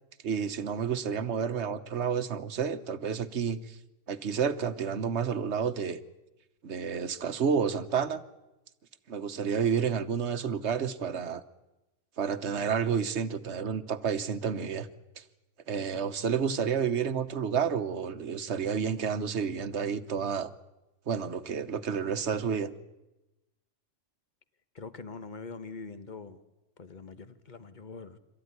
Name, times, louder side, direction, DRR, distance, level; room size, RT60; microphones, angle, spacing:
voice 1, 0.2-3.8 4.1-6.0 6.6-8.2 9.1-11.4 12.2-14.9 15.2-15.3 15.7-20.5 21.1-22.7, right 7 dB, 60° right, 1.3 m, -30 dB
voice 2, 24.7-26.4 26.8-28.2, left 4 dB, 40° left, 1.3 m, -43 dB
27.0 x 14.0 x 9.6 m
omnidirectional pair, 1.3 m